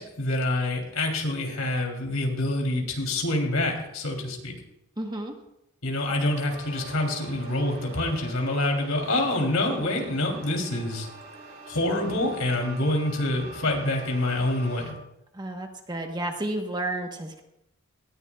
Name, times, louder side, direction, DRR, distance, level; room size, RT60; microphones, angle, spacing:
voice 1, 0.0-4.5 5.8-11.1 11.7-14.9, left 1 dB, 80° left, 1 dB, 3.4 m, -26 dB
voice 2, 5.0-5.3 15.3-17.4, right 1 dB, 20° right, 3 dB, 1.2 m, -31 dB
sound 1, 6.5-14.9, right 1 dB, 45° right, 2.1 m, -44 dB
19.0 x 14.5 x 2.4 m, 0.85 s
head